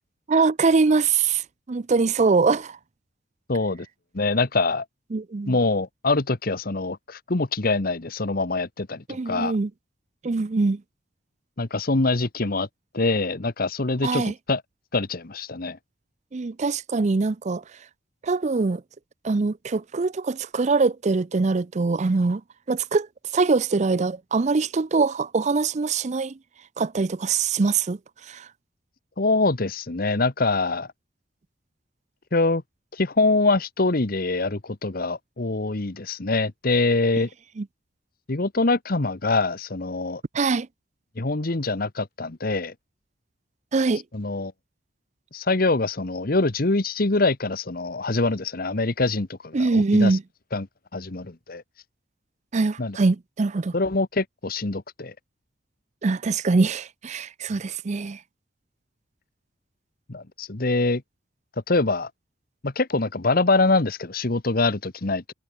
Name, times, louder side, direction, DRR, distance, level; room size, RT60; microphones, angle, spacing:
voice 1, 0.3-1.4 1.7-2.8 5.1-5.6 9.1-9.7 10.2-10.8 14.0-14.3 16.3-17.6 18.2-18.8 19.2-22.4 22.7-23.1 23.3-26.4 26.8-28.0 28.3-28.5 37.6-37.7 40.3-40.7 43.7-44.0 49.5-50.2 52.5-53.7 56.0-58.2, right 4 dB, 40° right, 0.5 m, -23 dB
voice 2, 3.5-3.9 4.1-4.8 5.5-9.5 11.6-12.7 12.9-14.6 14.9-15.8 29.2-30.9 32.3-32.6 33.0-37.3 38.3-40.2 41.2-42.7 44.1-44.5 45.3-50.2 50.5-50.7 50.9-51.6 52.8-53.0 53.7-55.1 60.1-61.0 61.7-62.1 62.6-65.3, left 3 dB, 50° left, 1.2 m, -24 dB
head